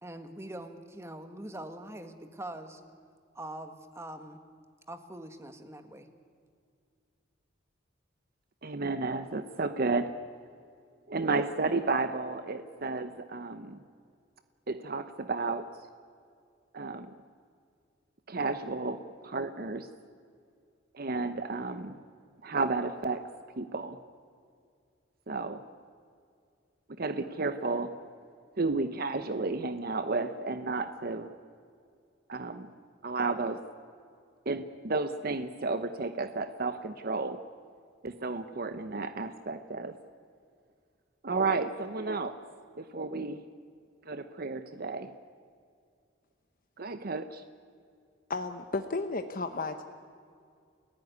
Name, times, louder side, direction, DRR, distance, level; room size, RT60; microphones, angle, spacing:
voice 1, 0.0-2.8 3.3-4.4 4.9-6.1, right 1 dB, 15° right, 7 dB, 1.7 m, -43 dB
voice 2, 8.6-10.1 11.1-13.8 14.7-15.7 16.7-17.1 18.3-19.9 20.9-22.0 22.4-23.2 23.6-24.0 25.3-25.6 27.0-27.9 28.6-31.3 32.3-32.7 33.0-33.6 34.5-37.4 38.0-40.0 41.2-42.4 42.8-43.4 44.1-45.1 46.8-47.4, right 3 dB, 50° right, 10 dB, 0.9 m, -32 dB
voice 3, 48.3-49.8, left 3 dB, 45° left, 7 dB, 1.0 m, -33 dB
29.5 x 16.0 x 9.5 m, 2.3 s
head